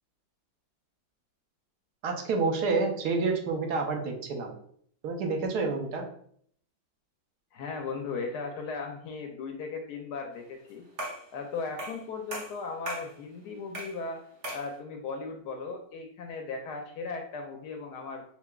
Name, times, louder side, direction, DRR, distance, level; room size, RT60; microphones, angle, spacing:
voice 1, 2.0-4.5 5.0-6.0, right 4 dB, 65° right, 2 dB, 1.1 m, -28 dB
voice 2, 7.5-10.8 11.3-14.2 14.5-18.2, left 4 dB, 75° left, 3 dB, 1.0 m, -37 dB
sound 1, 11.0-11.3 11.8-12.0 12.3-13.1 13.7-14.0 14.4-14.7, right 1 dB, 45° right, 1.0 m, -37 dB
5.6 x 2.4 x 2.3 m, 0.63 s
omnidirectional pair, 2.1 m